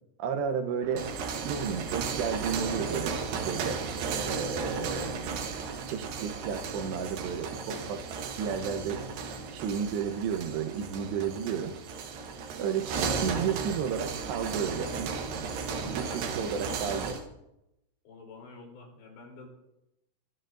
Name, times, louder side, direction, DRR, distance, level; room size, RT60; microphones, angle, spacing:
voice 1, 0.2-1.1 1.4-5.5 5.9-9.0 9.5-11.8 12.6-15.1 15.7-17.2, right 7 dB, 80° right, 7 dB, 3.2 m, -33 dB
sound 1, 0.8-17.3, right 5 dB, 65° right, 2.6 m, -35 dB
voice 2, 15.6-16.9 18.1-19.5, left 3 dB, 90° left, 0 dB, 5.6 m, -48 dB
23.0 x 13.0 x 2.6 m, 0.88 s
omnidirectional pair, 4.9 m